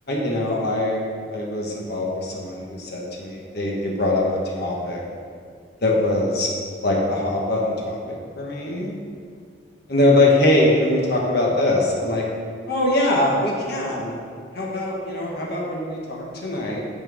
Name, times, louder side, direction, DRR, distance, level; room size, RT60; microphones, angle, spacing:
voice 1, 0.1-4.2 4.6-5.0 5.8-6.5 6.8-8.9 9.9-12.2 12.7-14.1 14.5-16.8, left 1 dB, 55° left, -2 dB, 1.5 m, -22 dB
12.5 x 4.4 x 3.5 m, 2.1 s
head